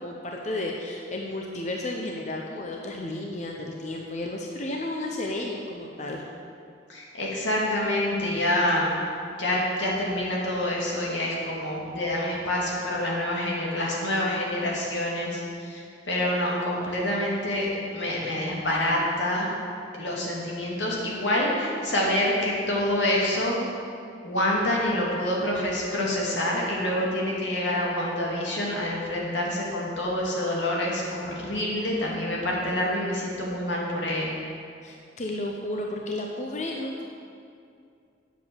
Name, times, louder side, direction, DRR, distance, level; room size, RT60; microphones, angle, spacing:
voice 1, 0.0-6.2 34.8-37.0, left 1 dB, 40° left, 1 dB, 0.8 m, -32 dB
voice 2, 6.9-9.0 9.3-19.5 20.0-23.6 24.2-34.3, left 1 dB, 85° left, -3 dB, 2.5 m, -27 dB
8.9 x 7.6 x 7.0 m, 2.4 s
head